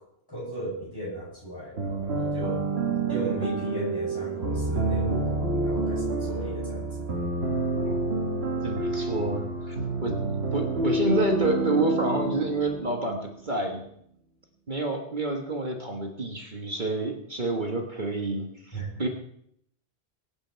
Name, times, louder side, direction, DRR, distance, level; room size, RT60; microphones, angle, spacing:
voice 1, 0.3-2.6 3.1-7.1 18.7-18.9, right 1 dB, 20° left, -6 dB, 8.1 m, -35 dB
sound 1, 1.8-13.5, right 3 dB, 75° right, 1.9 m, -28 dB
voice 2, 8.6-9.8 10.0-10.2 10.5-13.8 14.7-19.1, right 2 dB, 50° right, 2 dB, 1.7 m, -28 dB
22.5 x 9.0 x 4.6 m, 0.72 s
omnidirectional pair, 1.1 m